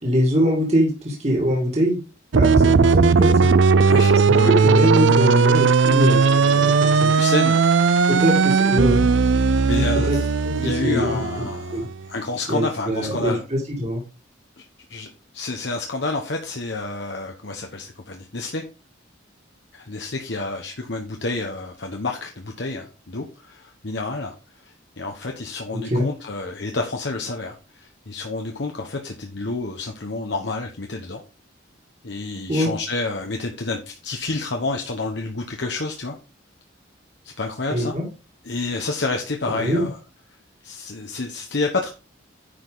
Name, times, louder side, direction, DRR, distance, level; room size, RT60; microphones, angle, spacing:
voice 1, 0.0-2.0 2.3-3.5 4.3-7.1 8.1-9.1 10.1-10.2 10.4-11.4 11.7-11.9 12.5-14.0 25.7-26.1 32.5-32.7 37.7-38.0 39.5-39.9, equal, 35° right, -1 dB, 2.3 m, -23 dB
sound 1, 2.3-11.9, right 5 dB, 65° right, 0.5 m, -17 dB
voice 2, 3.9-4.5 7.1-7.6 9.7-10.3 10.6-13.4 14.6-14.7 14.9-18.6 19.7-24.3 24.6-31.2 32.0-36.1 37.4-37.9 38.4-39.9 40.6-41.9, left 3 dB, 60° left, 2 dB, 1.0 m, -29 dB
10.0 x 5.2 x 3.9 m, 0.31 s
head